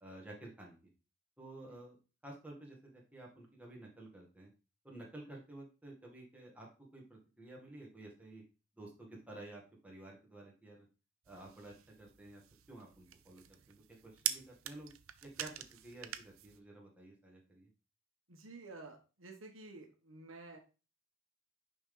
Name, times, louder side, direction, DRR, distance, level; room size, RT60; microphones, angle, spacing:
voice 1, 0.0-0.8 1.4-2.0 2.2-4.5 4.8-8.4 8.8-10.9 11.3-12.4 12.7-14.9 15.2-17.7, right 2 dB, 5° right, -2 dB, 1.9 m, -52 dB
sound 1, 11.2-16.6, right 12 dB, 90° right, 0.6 m, -44 dB
voice 2, 18.3-20.6, right 3 dB, 70° right, 4 dB, 1.3 m, -51 dB
6.0 x 5.2 x 3.9 m, 0.32 s
head